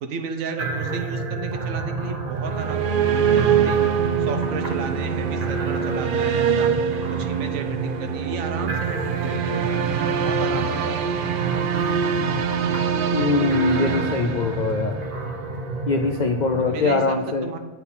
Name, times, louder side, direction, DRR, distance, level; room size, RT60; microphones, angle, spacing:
voice 1, 0.0-3.8 4.2-6.7 7.1-9.8 10.2-11.7 16.6-17.6, right 4 dB, 80° right, 6 dB, 1.2 m, -33 dB
sound 1, 0.6-16.8, right 4 dB, 35° right, 0.8 m, -30 dB
sound 2, 2.3-15.1, right 7 dB, 60° right, 0.5 m, -24 dB
voice 2, 13.1-15.0 15.9-17.5, left 3 dB, 80° left, 5 dB, 0.4 m, -22 dB
8.8 x 4.5 x 4.3 m, 1.4 s
omnidirectional pair, 1.4 m